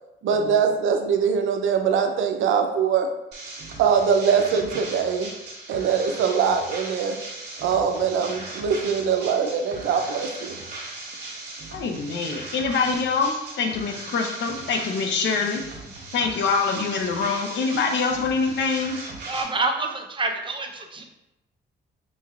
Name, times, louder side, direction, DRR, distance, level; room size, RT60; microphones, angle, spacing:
voice 1, 0.2-3.1 3.8-5.3 5.7-7.2 7.6-10.6, right 6 dB, 80° right, 5 dB, 0.6 m, -22 dB
sound 1, 3.3-19.4, right 2 dB, 60° right, 1.3 m, -38 dB
voice 2, 11.7-15.6 16.1-19.0, left 5 dB, 65° left, 4 dB, 0.7 m, -25 dB
voice 3, 19.3-21.0, right 3 dB, 25° right, 3 dB, 0.6 m, -27 dB
5.3 x 3.1 x 2.4 m, 0.92 s
cardioid pair, 90°, 20 cm